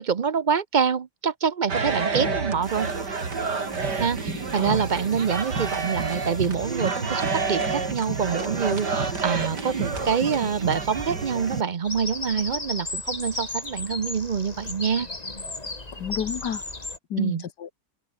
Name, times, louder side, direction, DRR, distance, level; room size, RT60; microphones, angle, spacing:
voice 1, 0.0-2.9 4.0-15.1 17.2-17.4, right 6 dB, 50° right, 0.6 m, -26 dB
sound 1, 1.7-11.6, right 4 dB, 90° right, 3.7 m, -29 dB
sound 2, 2.6-11.6, equal, ahead, 5.7 m, -44 dB
voice 2, 4.3-4.8 16.0-16.6 17.1-17.7, left 8 dB, 85° left, 1.9 m, -31 dB
Bird vocalization bird call bird song, 11.8-17.0, left 2 dB, 25° left, 2.3 m, -34 dB
open air
omnidirectional pair, 1.8 m